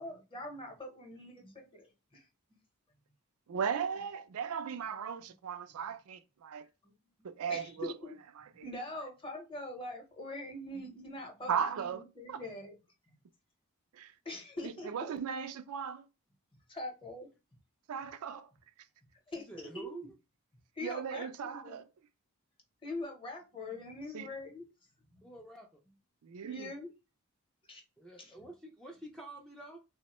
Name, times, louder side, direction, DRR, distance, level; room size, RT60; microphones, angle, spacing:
voice 1, 0.0-2.2 6.8-6.9 7.5-8.1 8.5-12.8 13.1-13.2 14.2-15.1 16.7-17.3 19.3-19.5 19.7-19.9 20.7-21.8 22.8-24.7 25.1-25.3 26.4-26.9 27.7-27.8 28.2-28.4, left 1 dB, 25° left, 0.7 m, -43 dB
voice 2, 3.5-6.7 7.2-7.9 8.4-8.7 8.9-9.0 11.5-12.4 13.9-14.1 14.6-16.0 17.9-18.5 20.8-21.9 24.1-24.3 26.2-26.7, right 7 dB, 80° right, 0.4 m, -37 dB
voice 3, 19.5-20.1 25.2-25.8 28.0-29.8, right 2 dB, 5° left, 0.3 m, -48 dB
3.5 x 2.0 x 2.9 m
head